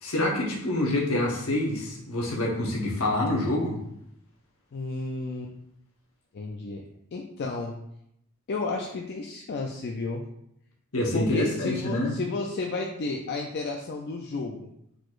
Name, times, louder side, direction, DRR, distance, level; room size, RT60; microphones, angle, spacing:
voice 1, 0.0-3.8 10.9-12.2, left 1 dB, 75° left, -1 dB, 1.1 m, -26 dB
voice 2, 4.7-5.5 6.3-6.8 7.1-7.8 8.5-10.2 11.1-14.7, left 3 dB, 50° left, 1 dB, 0.4 m, -32 dB
4.7 x 4.0 x 2.4 m, 0.76 s
head